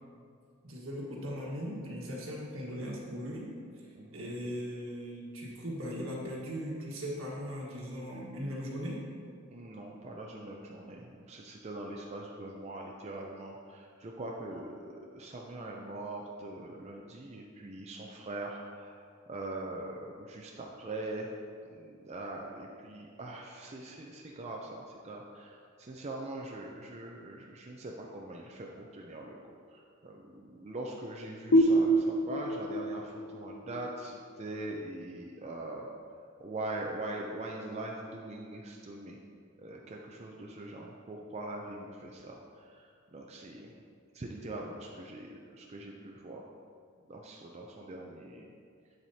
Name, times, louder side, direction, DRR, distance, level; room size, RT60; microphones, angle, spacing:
voice 1, 0.6-3.5 4.1-9.0, equal, 80° right, -3 dB, 1.5 m, -38 dB
voice 2, 3.9-4.3 9.5-21.3 21.7-29.4 29.7-35.9 36.4-39.2 39.6-43.7 44.1-46.5 47.1-48.5, right 2 dB, 30° right, -1 dB, 0.5 m, -42 dB
sound 1, 31.5-34.9, right 1 dB, 85° left, 0.5 m, -27 dB
8.0 x 7.2 x 2.8 m, 2.2 s
head